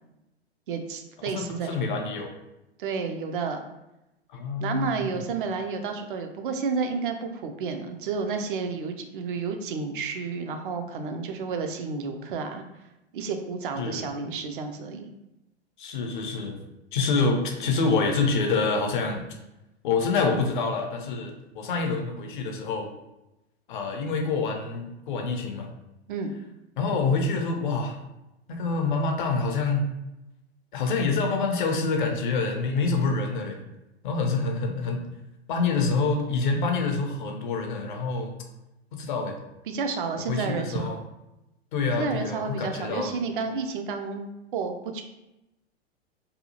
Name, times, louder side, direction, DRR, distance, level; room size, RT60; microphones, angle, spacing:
voice 1, 0.7-1.9 2.8-3.6 4.6-12.6 13.1-15.1 26.1-26.3 39.7-41.0 42.0-45.0, right 5 dB, 50° right, 5 dB, 0.4 m, -31 dB
voice 2, 1.2-2.3 4.3-5.1 13.8-14.1 15.8-16.6 16.9-19.2 19.8-22.9 23.7-25.7 26.8-28.0 28.5-29.8 30.7-33.6 34.0-35.0 35.5-38.3 38.9-39.4 40.3-41.0 41.7-43.1, left 4 dB, 50° left, 3 dB, 0.5 m, -26 dB
2.7 x 2.3 x 2.7 m, 0.94 s
figure-of-eight pair, 95°, 33 cm